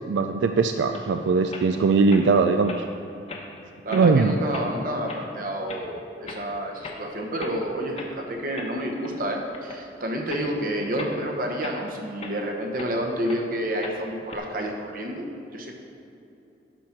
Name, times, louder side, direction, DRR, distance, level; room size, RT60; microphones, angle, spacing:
voice 1, 0.1-2.9 3.9-4.4, right 4 dB, 85° right, 7 dB, 0.3 m, -20 dB
sound 1, 0.9-1.1 1.5-1.7 2.1-2.3 2.6-2.8 3.3-3.6 3.9-4.1 4.5-4.7 5.1-5.2 5.7-5.8 6.3-6.4 6.8-7.0 7.4-7.6 7.9-8.1 8.5-9.2 9.5-9.8 10.3-10.5 11.0-11.2 11.6-12.9 13.2-13.4 13.8-14.4, left 3 dB, 35° left, 0.9 m, -38 dB
voice 2, 3.8-15.3 15.5-15.7, equal, 50° right, 1 dB, 1.1 m, -29 dB
11.0 x 4.4 x 6.0 m, 2.8 s
head